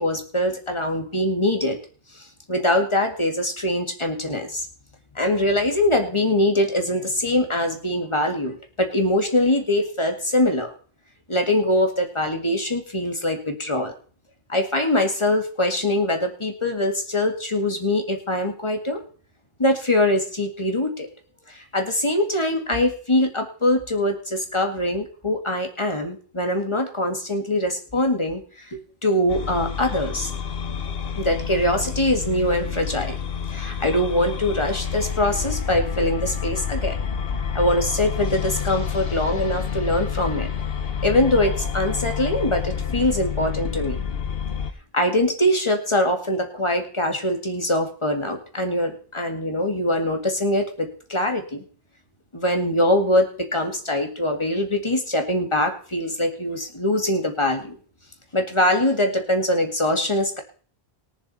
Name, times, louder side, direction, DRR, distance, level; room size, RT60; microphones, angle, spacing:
voice 1, 0.0-1.8 2.1-4.7 5.2-10.7 11.3-13.9 14.5-19.0 19.6-21.1 21.5-30.3 31.2-33.1 33.5-37.0 37.5-40.5 41.0-44.0 44.9-51.6 52.3-57.8 58.3-60.4, left 1 dB, 25° left, 4 dB, 2.1 m, -23 dB
sound 1, 29.3-44.7, left 7 dB, 65° left, 1.2 m, -28 dB
21.0 x 7.3 x 4.2 m, 0.43 s
omnidirectional pair, 1.1 m